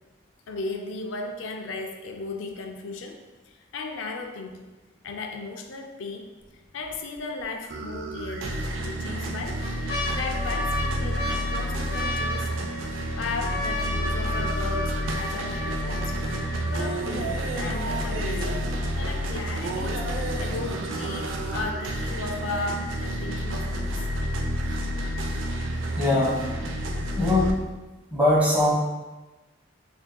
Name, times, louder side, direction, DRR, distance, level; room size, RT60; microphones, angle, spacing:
voice 1, 0.5-3.2 3.5-4.7 5.0-12.5 13.2-16.2 16.7-18.7 19.0-24.1, left 3 dB, 85° left, 4 dB, 0.4 m, -36 dB
sound 1, 6.4-6.9 7.4-7.5 8.4-8.9 9.4-17.3 18.0-18.1 18.3-18.8 19.3-19.4, left 1 dB, 55° left, 0.9 m, -34 dB
sound 2, 7.7-27.5, equal, 90° right, 0.5 m, -29 dB
voice 2, 25.9-26.5 27.2-27.6 28.1-28.7, left 1 dB, 10° right, -6 dB, 1.0 m, -21 dB
6.0 x 2.7 x 2.2 m, 1.2 s
head